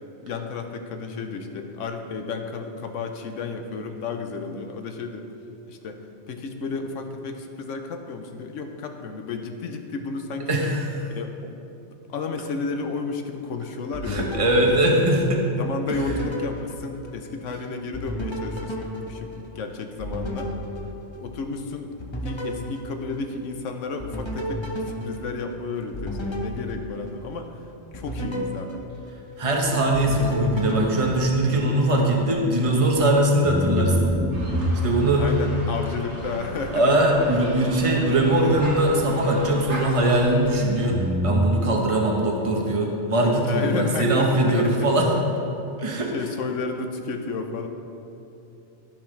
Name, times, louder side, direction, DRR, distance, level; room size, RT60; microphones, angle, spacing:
voice 1, 0.2-5.3 5.7-6.0 6.3-10.6 11.1-11.5 12.1-14.4 14.7-15.0 15.6-20.5 21.1-21.9 22.2-27.6 27.9-28.8 35.2-36.9 43.4-45.0 46.1-47.7, left 4 dB, 90° left, 5 dB, 1.1 m, -32 dB
voice 2, 10.5-10.8 14.1-15.4 15.9-16.0 29.4-34.1 34.8-35.2 36.7-45.1 45.8-46.1, right 1 dB, 30° right, 0 dB, 1.1 m, -21 dB
sound 1, 13.9-15.5 15.9-17.6 17.9-21.6 22.0-23.6 24.0-27.5 27.9-29.6 29.9-31.9, equal, 25° left, 1.0 m, -33 dB
sound 2, 29.6-33.0 33.4-40.6 40.9-41.4, equal, 5° right, 0.8 m, -30 dB
sound 3, 34.3-40.3, right 1 dB, 70° right, 1.9 m, -38 dB
15.5 x 5.8 x 3.3 m, 2.9 s
omnidirectional pair, 1.2 m